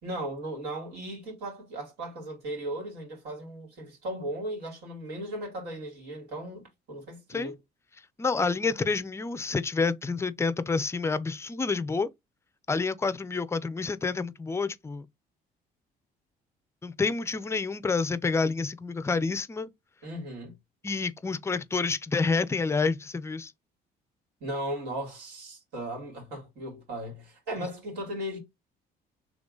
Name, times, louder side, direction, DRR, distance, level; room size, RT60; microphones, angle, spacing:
voice 1, 0.0-7.6 20.0-20.5 24.4-28.4, right 1 dB, 75° right, 2.7 m, -37 dB
voice 2, 8.2-12.1 12.7-15.1 16.8-19.7 20.8-23.5, left 4 dB, 15° left, 0.5 m, -28 dB
3.7 x 3.3 x 3.8 m
cardioid pair, 110°, 17 cm